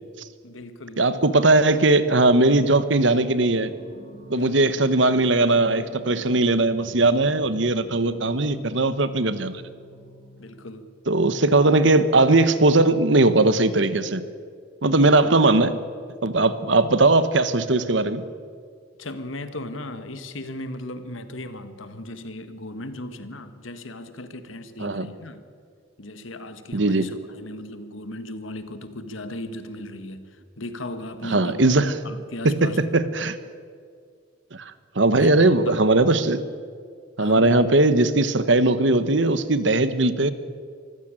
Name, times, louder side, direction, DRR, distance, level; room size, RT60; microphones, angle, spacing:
voice 1, 0.4-1.0 4.3-4.8 10.4-10.9 15.0-15.4 19.0-25.4 26.0-31.6 32.0-32.9 35.1-35.8 37.2-37.7, left 1 dB, 85° left, 10 dB, 1.7 m, -37 dB
voice 2, 1.0-3.7 4.3-9.6 11.1-14.2 14.8-15.7 16.2-18.2 24.8-25.1 26.7-27.1 31.3-31.9 32.4-33.4 34.6-36.4 37.2-40.3, right 2 dB, 65° right, 13 dB, 1.2 m, -19 dB
Singing, 1.9-10.8, right 1 dB, 80° right, 7.7 m, -45 dB
24.5 x 15.0 x 9.0 m, 2.1 s
head